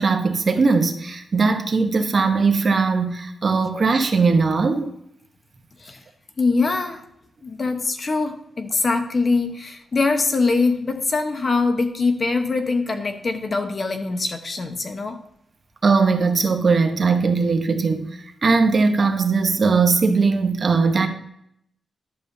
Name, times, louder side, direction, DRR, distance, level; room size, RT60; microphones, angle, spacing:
voice 1, 0.0-4.9 15.8-18.1 18.4-21.1, right 4 dB, 45° right, 6 dB, 1.0 m, -19 dB
voice 2, 6.4-7.0 7.4-15.2, left 3 dB, 45° left, 6 dB, 1.0 m, -23 dB
11.0 x 6.9 x 2.7 m, 0.74 s
wide cardioid pair, 105°, 0 cm